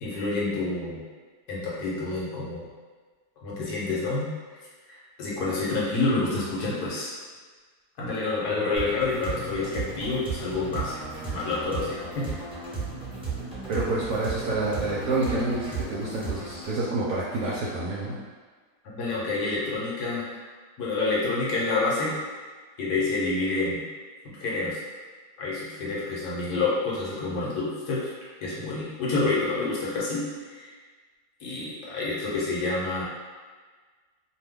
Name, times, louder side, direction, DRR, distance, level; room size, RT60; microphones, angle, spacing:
voice 1, 0.0-1.0 1.5-2.7 3.4-4.3 4.9-7.1 8.0-10.9 11.3-12.3 18.9-20.3 20.8-22.2 22.8-23.8 24.4-24.8 25.4-28.1 28.4-30.7 31.4-33.0, left 3 dB, 70° left, -6 dB, 1.2 m, -28 dB
sound 1, 8.8-16.8, right 4 dB, 5° right, 0.6 m, -35 dB
voice 2, 13.7-18.1, right 2 dB, 70° right, -7 dB, 0.8 m, -28 dB
2.7 x 2.2 x 3.4 m, 1.5 s
omnidirectional pair, 1.8 m